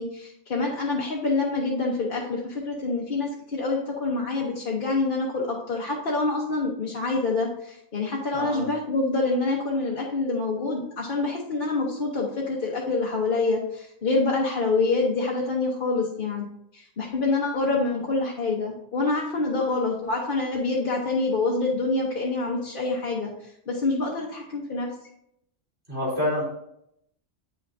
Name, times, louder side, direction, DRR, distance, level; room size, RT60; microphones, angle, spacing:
voice 1, 0.0-16.5 16.7-24.9, left 3 dB, 50° left, -4 dB, 1.1 m, -26 dB
voice 2, 8.3-8.7 25.9-26.5, left 1 dB, 60° right, -6 dB, 3.4 m, -27 dB
8.7 x 5.7 x 2.6 m, 0.74 s
omnidirectional pair, 1.2 m